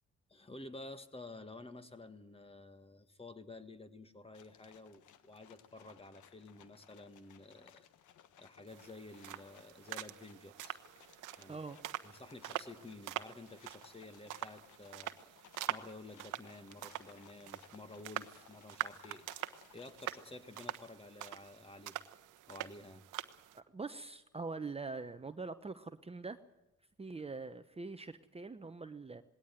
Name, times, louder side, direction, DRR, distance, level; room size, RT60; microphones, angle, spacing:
voice 1, 0.3-7.9 8.4-10.8 11.4-11.6 12.0-15.4 15.7-19.4 19.7-22.0 22.5-23.0, left 2 dB, 20° left, 10 dB, 1.8 m, -51 dB
sound 1, 4.3-21.5, left 9 dB, 80° left, 1.5 m, -63 dB
sound 2, 8.7-23.6, right 14 dB, 85° right, 1.1 m, -45 dB
voice 2, 11.5-11.8 23.5-26.4 27.0-29.2, right 4 dB, 20° right, 10 dB, 1.0 m, -43 dB
20.0 x 17.5 x 9.3 m, 0.94 s
cardioid pair, 90°, 30 cm